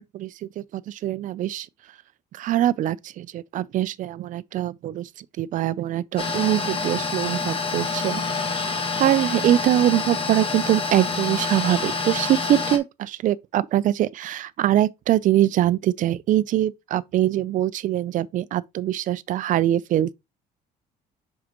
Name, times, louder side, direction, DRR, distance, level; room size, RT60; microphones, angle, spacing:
voice 1, 0.0-1.7 2.3-5.1 5.4-8.2 8.5-8.7 9.0-20.1, right 12 dB, 55° right, 0.5 m, -23 dB
sound 1, 6.2-12.8, left 4 dB, 35° left, 1.4 m, -27 dB
7.3 x 4.8 x 3.0 m
cardioid pair, 130°, 16 cm